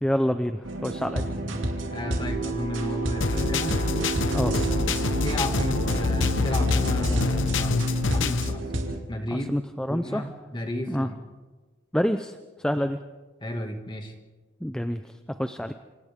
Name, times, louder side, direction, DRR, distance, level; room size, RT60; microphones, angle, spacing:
voice 1, 0.0-1.3 4.3-4.6 9.3-10.2 10.9-11.1 11.9-12.4 12.6-13.0 14.6-15.1 15.4-15.7, equal, 5° left, 8 dB, 0.5 m, -27 dB
sound 1, 0.6-9.0, right 1 dB, 90° right, 2.8 m, -30 dB
voice 2, 1.3-3.8 4.7-7.8 8.1-8.7 9.1-9.5 9.9-11.2 12.7-12.8 13.4-14.1, left 1 dB, 25° left, 4 dB, 2.1 m, -33 dB
sound 2, 3.2-8.6, left 3 dB, 80° left, 0.9 m, -26 dB
27.5 x 26.5 x 3.7 m, 1.3 s
head